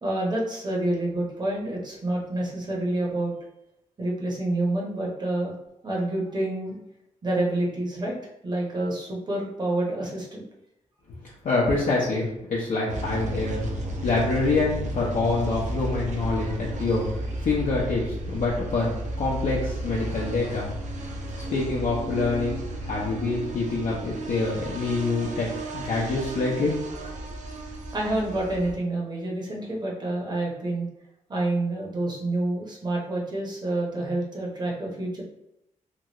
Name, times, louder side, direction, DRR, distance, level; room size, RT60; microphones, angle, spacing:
voice 1, 0.0-3.3 4.0-5.5 5.8-6.8 7.2-8.2 8.4-10.4 27.9-30.9 31.3-35.2, right 1 dB, 35° right, -3 dB, 0.8 m, -28 dB
voice 2, 11.4-13.6 14.0-17.1 17.4-20.7 21.5-25.5 25.7-26.7, left 3 dB, 70° left, -5 dB, 0.7 m, -26 dB
sound 1, 12.9-28.7, right 1 dB, 65° right, 0.5 m, -33 dB
2.9 x 2.4 x 2.9 m, 0.84 s
wide cardioid pair, 130°, 13 cm